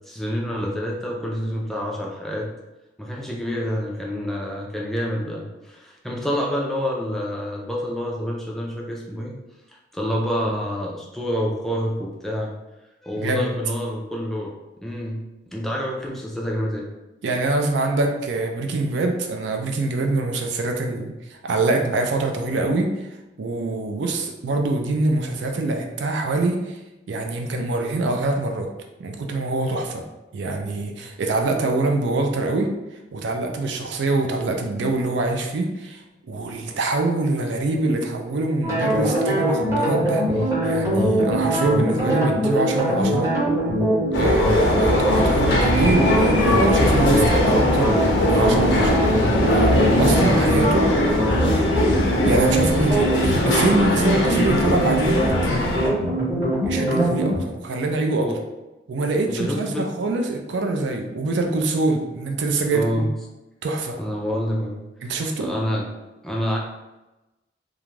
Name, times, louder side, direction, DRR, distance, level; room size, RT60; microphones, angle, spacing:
voice 1, 0.1-2.5 3.0-9.3 9.9-12.5 13.0-14.5 14.8-16.9 58.1-58.4 59.3-59.9 62.7-63.1 63.9-64.8 65.4-65.9 66.2-66.6, equal, ahead, -3 dB, 0.3 m, -27 dB
voice 2, 13.2-13.5 17.2-22.9 23.4-26.7 27.1-28.7 29.0-30.0 30.3-32.7 33.1-36.0 36.3-43.3 44.1-48.0 48.2-49.0 49.4-50.9 52.2-55.3 56.6-58.3 58.9-63.1 63.6-64.0 65.0-65.5, right 2 dB, 75° right, 3 dB, 0.4 m, -24 dB
sound 1, 38.6-57.4, right 1 dB, 15° right, 0.8 m, -22 dB
sound 2, 44.1-55.9, left 1 dB, 85° left, 0.6 m, -21 dB
2.5 x 2.3 x 3.1 m, 1.0 s
head